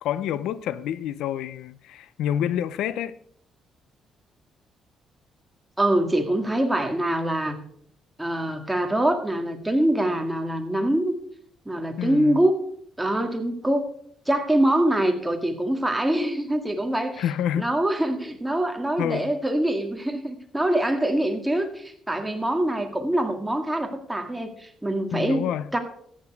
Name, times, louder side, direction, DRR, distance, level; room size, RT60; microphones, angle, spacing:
voice 1, 0.0-3.2 12.0-12.4 17.2-17.7 19.0-19.3 25.1-25.7, left 10 dB, 85° left, 0.5 m, -28 dB
voice 2, 5.8-7.6 8.2-11.1 11.7-12.5 13.0-13.9 14.3-17.2 17.5-25.5 25.7-25.8, right 1 dB, 10° right, 1.9 m, -24 dB
14.0 x 8.8 x 4.6 m
cardioid pair, 90°, 0 cm